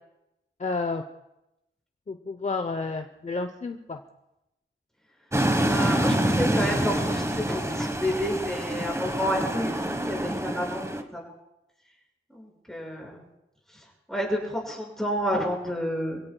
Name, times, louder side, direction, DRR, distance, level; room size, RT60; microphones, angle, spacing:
voice 1, 0.6-1.0 2.1-4.0, left 3 dB, 35° left, 6 dB, 0.9 m, -30 dB
sound 1, 5.3-11.0, right 1 dB, 15° right, 1.4 m, -26 dB
voice 2, 5.6-11.2 12.3-13.3 13.7-16.2, equal, ahead, -2 dB, 6.1 m, -30 dB
27.5 x 17.0 x 2.4 m, 0.90 s
wide cardioid pair, 75°, 21 cm